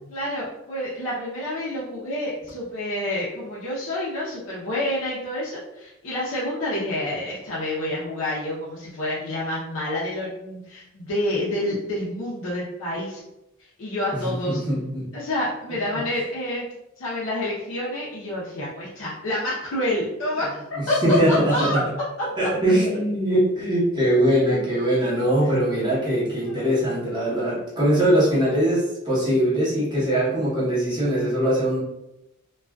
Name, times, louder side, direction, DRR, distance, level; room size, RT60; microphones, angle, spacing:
voice 1, 0.1-13.2 13.6-14.6 15.1-16.7 17.0-21.8 25.4-25.5 26.4-26.8, left 1 dB, 65° left, -7 dB, 0.6 m, -28 dB
voice 2, 14.2-15.0 20.8-21.8 22.4-31.8, right 1 dB, 20° right, -8 dB, 0.9 m, -22 dB
2.4 x 2.3 x 2.2 m, 0.89 s
head